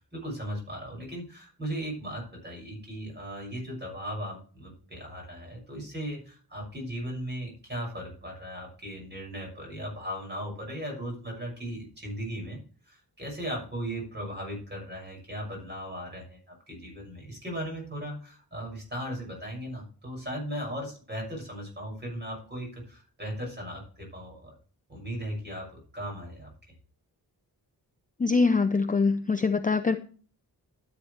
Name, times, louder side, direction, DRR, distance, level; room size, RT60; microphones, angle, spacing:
voice 1, 0.1-12.6 12.8-24.5 24.9-26.7, equal, 25° right, -1 dB, 6.7 m, -37 dB
voice 2, 28.2-30.0, left 4 dB, 20° left, 8 dB, 0.5 m, -23 dB
13.0 x 8.7 x 3.4 m, 0.41 s
wide cardioid pair, 170°, 39 cm